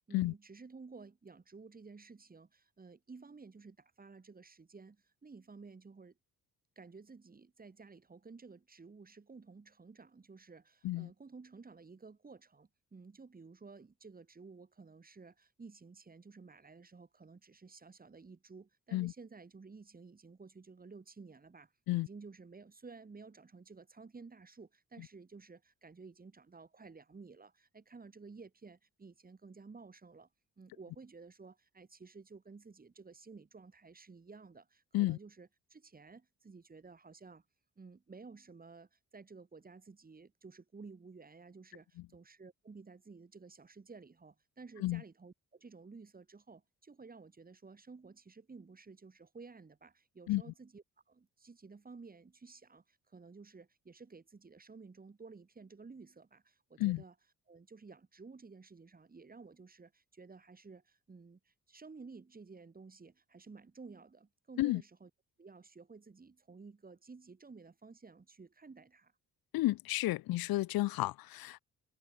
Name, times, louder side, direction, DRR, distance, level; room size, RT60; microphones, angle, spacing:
voice 1, 0.1-6.2 6.8-30.3 30.6-37.4 37.8-57.1 57.5-65.1 65.4-69.1, right 4 dB, 25° right, 3.5 m, -54 dB
voice 2, 69.5-71.6, left 17 dB, 90° left, 0.6 m, -32 dB
cardioid pair, 125°, 35 cm